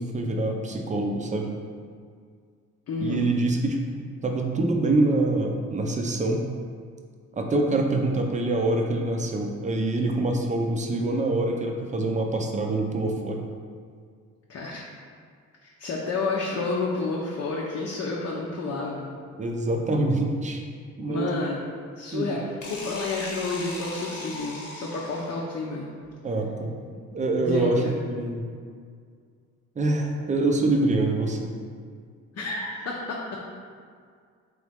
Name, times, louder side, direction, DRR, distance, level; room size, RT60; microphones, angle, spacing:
voice 1, 0.0-1.5 3.0-6.5 7.3-13.4 19.4-20.6 21.0-21.3 22.1-22.3 26.2-26.7 27.1-28.5 29.8-31.5, right 2 dB, 25° right, 2 dB, 0.5 m, -25 dB
voice 2, 2.9-3.3 14.5-14.8 15.6-19.1 21.0-21.6 22.0-25.9 27.4-28.0 32.3-33.4, left 3 dB, 55° left, -4 dB, 0.7 m, -30 dB
sound 1, 22.6-25.5, left 2 dB, 85° left, 1.0 m, -38 dB
3.9 x 3.1 x 3.5 m, 2.1 s
cardioid pair, 90°, 30 cm